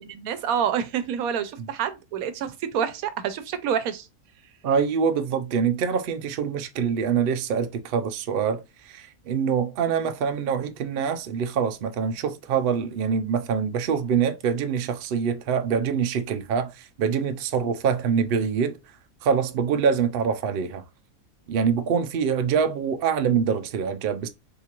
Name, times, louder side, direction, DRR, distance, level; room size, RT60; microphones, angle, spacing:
voice 1, 0.0-4.1, right 8 dB, 80° right, 1.1 m, -28 dB
voice 2, 4.6-18.8 19.2-20.8 21.5-24.3, right 6 dB, 60° right, 0.6 m, -25 dB
3.7 x 2.4 x 2.9 m
omnidirectional pair, 1.5 m